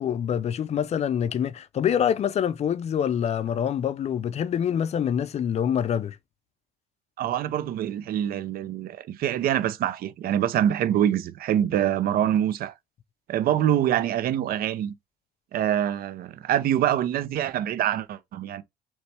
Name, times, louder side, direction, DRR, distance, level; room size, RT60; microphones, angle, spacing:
voice 1, 0.0-6.2, left 8 dB, 40° left, 0.4 m, -25 dB
voice 2, 7.2-12.7 13.3-14.9 15.5-18.6, right 11 dB, 60° right, 0.6 m, -25 dB
4.1 x 3.1 x 3.3 m
cardioid pair, 110°, 17 cm